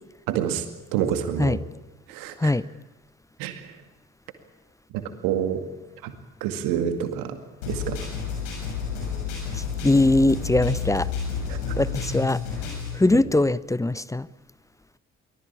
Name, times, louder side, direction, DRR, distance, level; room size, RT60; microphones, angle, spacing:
voice 1, 0.3-0.6 0.9-1.6 2.1-2.5 3.4-3.8 4.9-5.6 6.0-6.1 6.4-7.4 7.7-8.1 11.5-11.6 13.1-13.2, right 9 dB, 65° right, 9 dB, 2.2 m, -28 dB
sound 1, 7.6-13.0, left 6 dB, 75° left, 6.7 m, -30 dB
voice 2, 9.8-11.1 11.8-12.4 12.9-14.3, left 2 dB, 10° left, 19 dB, 0.7 m, -21 dB
23.5 x 18.5 x 8.7 m, 1.1 s
figure-of-eight pair, 40°, 37 cm